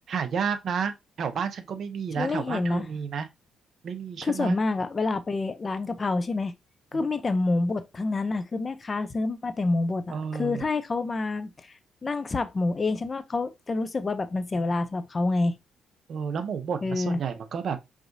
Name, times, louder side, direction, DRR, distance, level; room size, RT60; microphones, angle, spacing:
voice 1, 0.0-3.3 3.8-4.6 10.1-10.6 16.1-17.8, right 6 dB, 60° right, 0.7 m, -31 dB
voice 2, 2.2-2.9 4.2-6.5 6.9-11.7 12.0-15.5 16.8-17.2, left 3 dB, 30° left, 0.6 m, -27 dB
4.8 x 2.8 x 2.7 m
cardioid pair, 90°, 0 cm